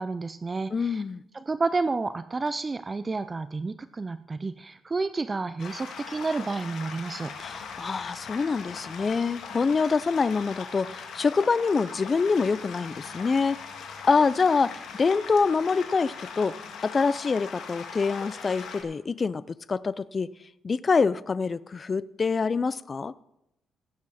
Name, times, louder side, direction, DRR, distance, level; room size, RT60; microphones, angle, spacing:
voice 1, 0.0-1.0 1.3-7.4, right 3 dB, 25° right, 0.4 m, -30 dB
voice 2, 0.7-1.2 7.4-13.6 14.1-20.3 20.6-23.1, left 4 dB, 35° left, 0.5 m, -25 dB
sound 1, 5.6-18.8, left 5 dB, 75° left, 2.2 m, -40 dB
17.0 x 8.6 x 4.2 m
cardioid pair, 90°, 0 cm